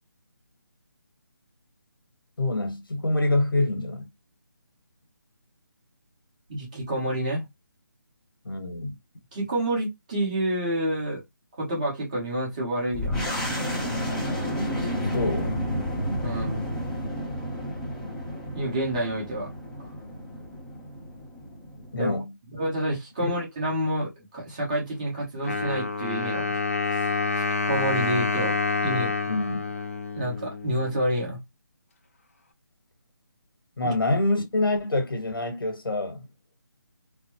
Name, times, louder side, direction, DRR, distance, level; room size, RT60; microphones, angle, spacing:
voice 1, 2.4-4.1 8.4-8.9 13.9-14.8 15.1-15.6 21.9-22.3 23.2-23.3 29.3-29.7 33.8-36.3, left 2 dB, 90° left, 1.5 m, -27 dB
voice 2, 6.5-7.5 9.3-11.2 11.6-13.2 16.2-16.6 18.5-19.5 19.8-19.9 22.0-22.1 22.5-26.6 26.8-27.0 27.7-28.6 28.8-29.2 30.1-31.4 33.8-33.9, right 1 dB, 20° right, 1.2 m, -28 dB
sound 1, 12.9-22.1, equal, 5° left, 0.8 m, -31 dB
Wind instrument woodwind instrument, 25.4-31.1, left 4 dB, 40° left, 0.6 m, -28 dB
4.2 x 2.1 x 3.1 m
hypercardioid pair, 175°, 11 cm